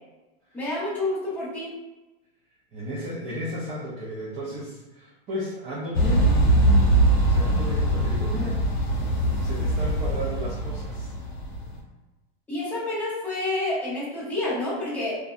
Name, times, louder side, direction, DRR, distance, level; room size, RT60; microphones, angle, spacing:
voice 1, 0.5-1.7 12.5-15.2, left 2 dB, 5° left, -10 dB, 0.9 m, -28 dB
voice 2, 2.7-6.2 7.2-8.6 9.4-11.1, equal, 20° right, -8 dB, 0.4 m, -34 dB
sound 1, 5.9-11.8, right 1 dB, 60° left, 0.9 m, -22 dB
2.6 x 2.2 x 2.4 m, 1.1 s
supercardioid pair, 155°, 31 cm